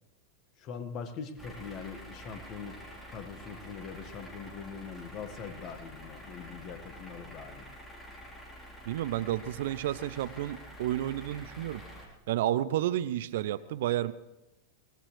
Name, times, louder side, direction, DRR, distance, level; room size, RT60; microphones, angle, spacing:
voice 1, 0.6-7.7, left 6 dB, 35° left, 7 dB, 1.7 m, -42 dB
sound 1, 1.4-12.1, equal, 10° left, 3.8 m, -48 dB
voice 2, 8.9-11.8 12.3-14.1, right 13 dB, 55° right, 16 dB, 0.5 m, -31 dB
22.5 x 19.0 x 3.3 m, 0.95 s
figure-of-eight pair, 90°, 0 cm